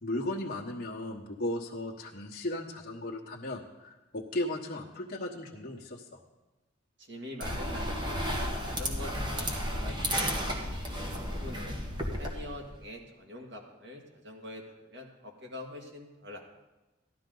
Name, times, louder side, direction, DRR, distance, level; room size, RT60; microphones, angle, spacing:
voice 1, 0.0-6.2, left 1 dB, 45° left, -3 dB, 1.2 m, -36 dB
voice 2, 7.0-8.2 8.6-10.9 11.4-11.9 12.1-14.6 14.9-16.4, left 1 dB, 60° right, 1 dB, 1.9 m, -45 dB
sound 1, 7.4-12.8, equal, 25° right, 1.3 m, -33 dB
14.5 x 11.5 x 3.9 m, 1.1 s
head